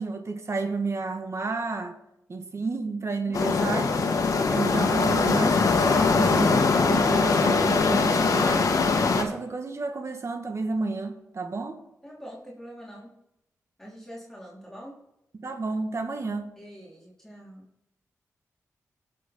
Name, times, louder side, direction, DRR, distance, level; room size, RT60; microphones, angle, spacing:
voice 1, 0.0-2.0 2.3-3.9 4.5-8.7 9.2-11.8 15.3-16.5, right 3 dB, 50° right, 6 dB, 1.6 m, -31 dB
sound 1, 3.3-9.2, left 4 dB, 70° left, 1.5 m, -22 dB
voice 2, 3.3-3.7 12.0-13.1 13.8-14.9 16.2-17.7, equal, 5° left, -5 dB, 3.1 m, -44 dB
18.0 x 6.2 x 3.9 m, 0.84 s
cardioid pair, 55°, 6 cm